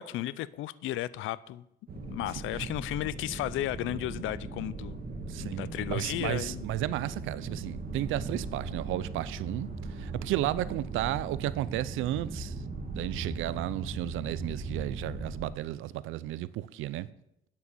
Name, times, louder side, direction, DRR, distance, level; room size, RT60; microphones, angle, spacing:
voice 1, 0.0-1.6 2.1-5.0 5.4-6.6, left 15 dB, 85° left, 0.5 m, -34 dB
sound 1, 1.9-15.5, right 3 dB, 50° right, 1.9 m, -39 dB
voice 2, 5.3-12.6 12.9-17.1, right 14 dB, 90° right, 0.5 m, -33 dB
8.4 x 6.9 x 8.3 m
cardioid pair, 90°, 20 cm